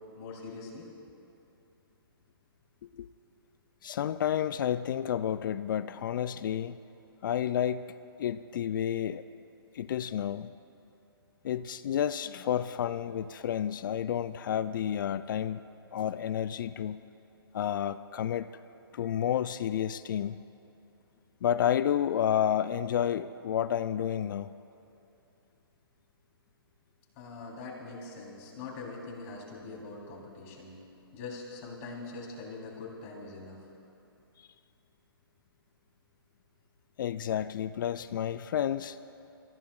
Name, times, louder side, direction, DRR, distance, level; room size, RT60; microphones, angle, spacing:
voice 1, 0.1-0.9 27.2-30.8 31.1-33.6, left 3 dB, 35° left, -2 dB, 3.4 m, -43 dB
voice 2, 3.8-6.8 7.2-7.9 8.2-9.2 9.7-10.6 11.4-15.6 15.9-17.0 17.5-18.5 18.9-20.4 21.4-24.5 37.0-39.0, left 10 dB, 55° left, 14 dB, 0.4 m, -30 dB
27.5 x 15.5 x 2.4 m, 2.7 s
hypercardioid pair, 130°, 13 cm